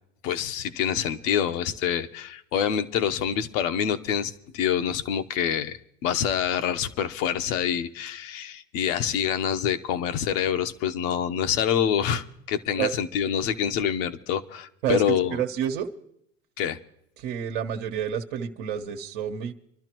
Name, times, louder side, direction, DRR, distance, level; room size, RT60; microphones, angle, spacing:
voice 1, 0.2-15.4 16.6-16.8, left 9 dB, 80° left, 8 dB, 1.0 m, -26 dB
voice 2, 14.8-15.9 17.2-19.5, right 9 dB, 80° right, 2 dB, 1.2 m, -29 dB
26.0 x 12.0 x 3.0 m, 0.73 s
supercardioid pair, 100°, 38 cm